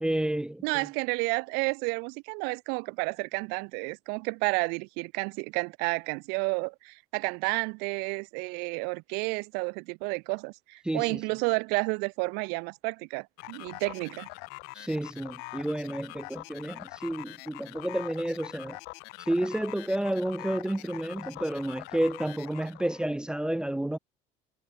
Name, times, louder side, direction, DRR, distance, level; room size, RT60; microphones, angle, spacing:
voice 1, 0.0-0.9 10.8-11.2 14.8-18.8 19.2-24.0, right 1 dB, 5° right, 0.3 m, -30 dB
voice 2, 0.6-14.3, right 32 dB, 80° right, 0.4 m, -31 dB
sound 1, 13.4-23.1, left 28 dB, 80° left, 2.1 m, -44 dB
cardioid pair, 130°, 17 cm